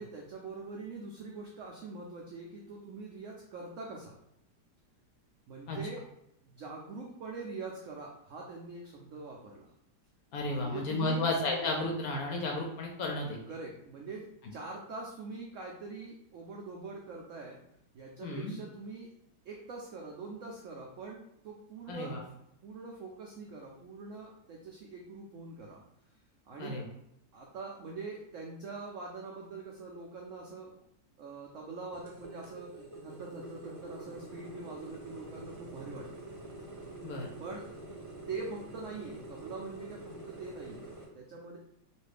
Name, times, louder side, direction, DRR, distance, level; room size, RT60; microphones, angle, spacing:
voice 1, 0.0-4.2 5.5-6.0 6.4-9.7 10.4-11.2 13.5-17.6 17.9-19.1 19.5-22.3 22.6-25.8 26.5-26.8 27.3-30.7 31.2-36.3 37.4-37.6 38.3-40.8 41.1-41.6, right 3 dB, 85° right, -1 dB, 0.6 m, -43 dB
voice 2, 10.3-13.4 18.2-18.5 21.9-22.2 26.6-26.8 37.0-37.3, left 2 dB, 70° left, 1 dB, 0.9 m, -33 dB
sound 1, 31.9-41.1, right 2 dB, 50° right, 0.4 m, -46 dB
3.0 x 2.5 x 3.3 m, 0.80 s
omnidirectional pair, 1.9 m